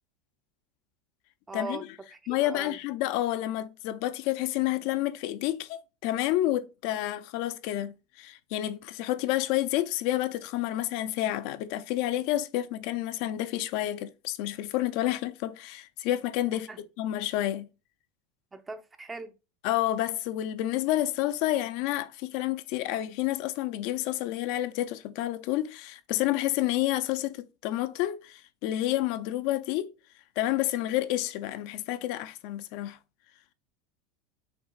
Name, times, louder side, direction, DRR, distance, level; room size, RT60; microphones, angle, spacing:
voice 1, 1.5-2.8 16.5-16.8 18.5-19.3, right 3 dB, 15° right, 0.5 m, -40 dB
voice 2, 2.3-17.7 19.6-29.9 30.4-33.0, left 14 dB, 55° left, 0.4 m, -29 dB
5.8 x 3.6 x 2.3 m
supercardioid pair, 150°, 0 cm